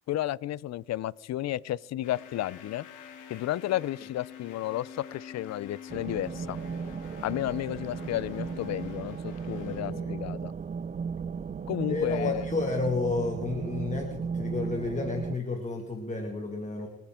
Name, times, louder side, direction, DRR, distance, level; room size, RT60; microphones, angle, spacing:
voice 1, 0.1-2.9 3.3-6.6 7.2-10.5 11.7-12.5, left 14 dB, 60° left, 22 dB, 0.5 m, -32 dB
sound 1, 2.0-9.8, left 8 dB, 85° left, 2.3 m, -46 dB
sound 2, 5.9-15.4, right 6 dB, 25° right, 0.5 m, -35 dB
voice 2, 9.7-10.1 11.9-16.9, left 3 dB, 25° left, 3 dB, 2.0 m, -32 dB
25.0 x 9.2 x 3.7 m, 0.99 s
cardioid pair, 90°, 30 cm